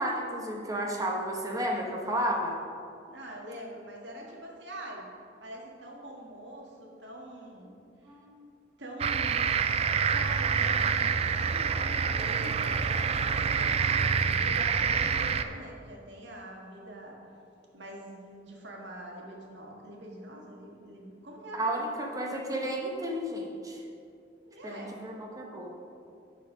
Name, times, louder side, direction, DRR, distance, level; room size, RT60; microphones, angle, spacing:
voice 1, 0.0-2.6 8.0-8.3 21.5-23.8 24.6-25.7, right 1 dB, 20° right, 0 dB, 1.1 m, -32 dB
voice 2, 3.1-5.1 5.4-7.8 8.0-8.1 8.8-9.5 10.0-17.2 17.7-21.9 24.4-24.9, right 1 dB, 85° right, -1 dB, 1.7 m, -44 dB
sound 1, 9.0-15.4, right 6 dB, 35° right, 0.3 m, -27 dB
12.0 x 4.6 x 4.9 m, 2.5 s
head